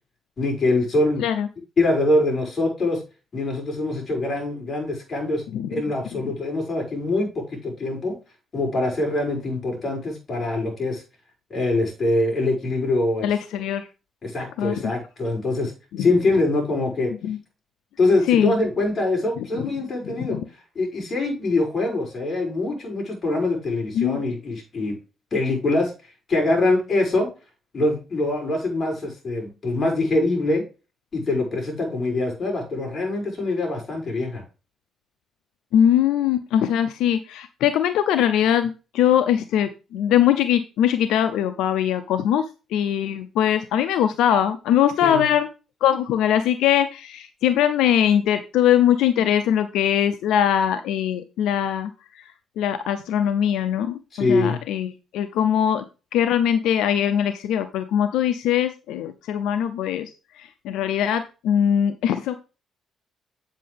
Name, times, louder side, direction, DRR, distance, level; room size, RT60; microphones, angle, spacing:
voice 1, 0.4-1.2 1.8-3.0 3.3-5.4 5.7-8.1 8.5-11.0 11.5-13.3 14.2-15.7 16.0-17.1 18.0-20.4 20.7-24.9 25.3-25.9 26.3-27.3 27.7-30.6 31.1-34.4 45.0-45.3 54.1-54.6, left 2 dB, 40° left, 1 dB, 6.0 m, -23 dB
voice 2, 5.5-5.8 6.2-6.3 13.2-13.9 14.6-14.9 15.9-16.1 17.2-17.4 18.3-18.6 19.4-19.7 20.2-20.5 23.9-24.2 35.7-42.5 42.7-45.5 45.8-51.9 52.1-52.2 52.6-55.8 56.1-60.1 60.4-62.3, left 10 dB, 90° left, 10 dB, 0.6 m, -21 dB
8.5 x 7.5 x 3.4 m, 0.31 s
cardioid pair, 90°, 0 cm